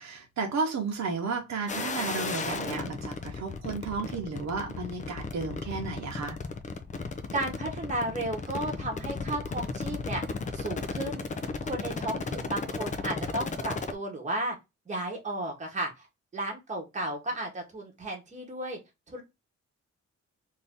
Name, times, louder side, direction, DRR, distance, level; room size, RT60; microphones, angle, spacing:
voice 1, 0.0-6.4, right 4 dB, 70° right, 0.9 m, -33 dB
sound 1, 1.7-13.9, left 4 dB, 25° left, 0.4 m, -35 dB
voice 2, 7.3-10.2 10.5-11.3 11.6-14.6 14.9-16.1 16.3-18.8 19.1-19.2, right 1 dB, 25° right, 1.0 m, -34 dB
2.7 x 2.6 x 3.4 m
wide cardioid pair, 155°, 29 cm